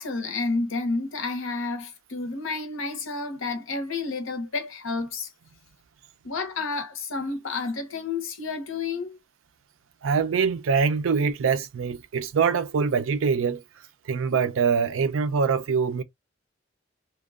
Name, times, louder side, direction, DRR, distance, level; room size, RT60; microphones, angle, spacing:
voice 1, 0.0-5.3 6.2-9.2, left 3 dB, 80° left, 0.7 m, -30 dB
voice 2, 10.0-13.6 14.1-16.0, right 5 dB, 75° right, 0.4 m, -24 dB
2.8 x 2.2 x 2.3 m
head